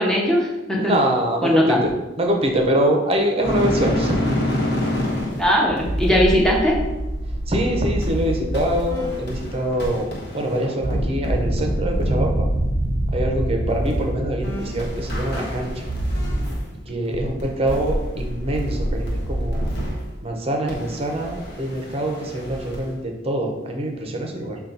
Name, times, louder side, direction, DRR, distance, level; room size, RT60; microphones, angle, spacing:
voice 1, 0.0-0.9 1.4-1.8 5.4-6.8, equal, 5° left, -3 dB, 0.8 m, -19 dB
voice 2, 0.8-1.9 2.2-4.5 7.5-12.5 13.1-15.9 16.9-19.7 20.2-24.6, right 1 dB, 30° right, 2 dB, 0.6 m, -24 dB
sound 1, 3.4-16.8 17.0-20.1 20.7-22.9, equal, 60° left, 1.1 m, -26 dB
5.5 x 2.3 x 3.9 m, 1.1 s
head